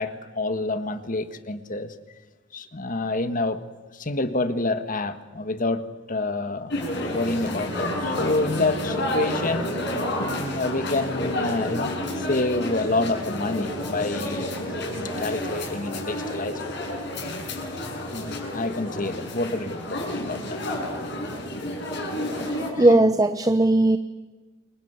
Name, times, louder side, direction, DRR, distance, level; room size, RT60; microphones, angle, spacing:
voice 1, 0.0-1.9 2.5-3.6 3.9-6.7 7.1-9.7 10.1-14.6 14.9-17.0 18.1-20.6 22.7-22.9, left 2 dB, 40° left, 10 dB, 1.6 m, -28 dB
sound 1, 6.7-22.7, left 1 dB, 60° left, 6.9 m, -30 dB
sound 2, 7.1-18.9, right 1 dB, 40° right, 4.7 m, -40 dB
voice 2, 22.4-24.0, right 2 dB, 20° right, 10 dB, 0.8 m, -19 dB
28.0 x 23.5 x 8.2 m, 1.3 s
head